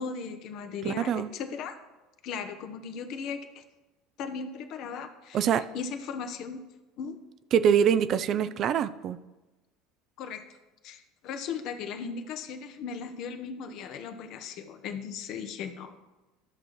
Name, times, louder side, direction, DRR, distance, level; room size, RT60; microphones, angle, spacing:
voice 1, 0.0-1.8 2.2-3.6 4.2-6.6 7.0-7.2 10.2-10.4 10.8-16.0, left 6 dB, 55° left, 8 dB, 0.9 m, -37 dB
voice 2, 0.8-1.3 5.3-5.6 7.5-9.2, right 8 dB, 50° right, 13 dB, 0.4 m, -24 dB
12.5 x 6.3 x 3.1 m, 1.1 s
hypercardioid pair, 70°, 0 cm